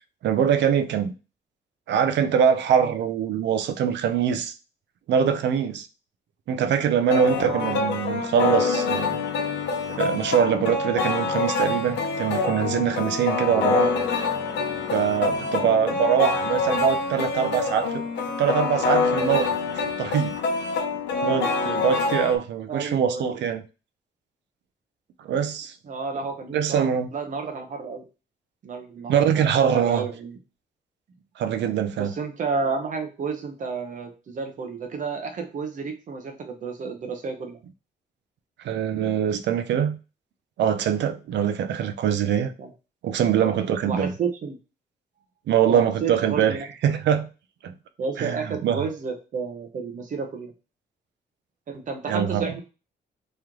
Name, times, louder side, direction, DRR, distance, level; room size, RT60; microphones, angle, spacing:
voice 1, 0.2-1.1 1.9-4.5 5.1-5.9 6.5-9.2 9.9-13.9 14.9-18.0 18.4-20.3 21.2-23.6 25.2-25.7 26.5-27.1 29.1-30.0 31.4-32.1 38.6-40.0 40.6-42.5 43.0-44.1 45.5-46.6 46.8-47.3 47.6-47.7 48.2-48.8 52.1-52.6, right 8 dB, 85° right, 0.5 m, -23 dB
sound 1, 7.1-22.4, left 4 dB, 80° left, 0.8 m, -26 dB
voice 2, 7.2-7.9 22.7-23.3 25.8-28.0 28.6-29.5 29.7-30.4 32.0-37.6 42.6-42.7 43.4-43.6 43.8-44.6 45.7-46.6 48.0-50.5 51.7-52.6, right 4 dB, 45° right, 0.8 m, -31 dB
3.1 x 3.1 x 3.7 m
wide cardioid pair, 175°, 18 cm